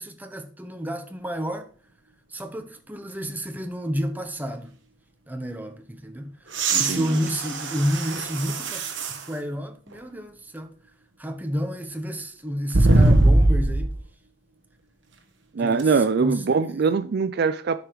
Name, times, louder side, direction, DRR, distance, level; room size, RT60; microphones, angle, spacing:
voice 1, 0.0-1.7 2.3-4.7 5.3-10.7 11.2-14.0 15.6-16.9, equal, 10° right, 0.8 m, -31 dB
sound 1, 6.5-9.3 9.9-10.0 12.7-14.0 15.8-15.9, right 2 dB, 70° right, 1.1 m, -21 dB
voice 2, 6.7-7.1 15.5-17.8, right 5 dB, 55° right, 0.4 m, -22 dB
9.5 x 4.9 x 4.7 m
head